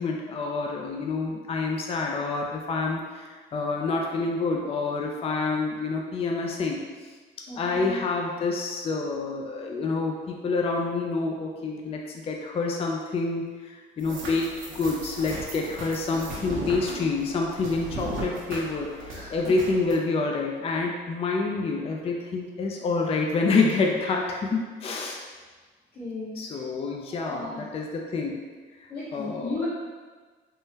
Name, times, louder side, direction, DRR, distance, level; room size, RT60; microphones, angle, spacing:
voice 1, 0.0-6.8 7.6-25.2 26.4-28.4 28.8-29.6, left 3 dB, 30° left, 0 dB, 0.3 m, -28 dB
voice 2, 7.5-8.0 19.1-19.4 25.9-26.6 27.1-27.6 28.9-29.7, left 2 dB, 50° left, -12 dB, 1.2 m, -35 dB
sound 1, 14.0-20.0, right 1 dB, 85° right, 0.9 m, -37 dB
3.5 x 2.1 x 2.8 m, 1.4 s
cardioid pair, 90°, 20 cm